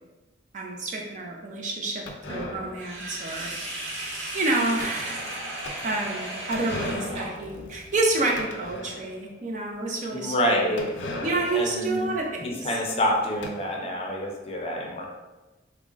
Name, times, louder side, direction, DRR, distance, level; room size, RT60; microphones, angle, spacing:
voice 1, 0.5-3.5 4.3-5.2 5.8-10.8 11.2-12.6, right 2 dB, 45° right, 0 dB, 0.5 m, -29 dB
sound 1, 2.1-9.3 9.7-9.8 10.0-10.1 10.8-13.5, left 2 dB, 85° left, 0.5 m, -39 dB
Sink (filling or washing), 2.8-7.7, right 1 dB, 90° right, 0.9 m, -35 dB
voice 2, 10.1-11.0 11.5-12.1 12.4-15.1, equal, 35° left, -1 dB, 0.5 m, -27 dB
3.6 x 2.1 x 3.7 m, 1.1 s
head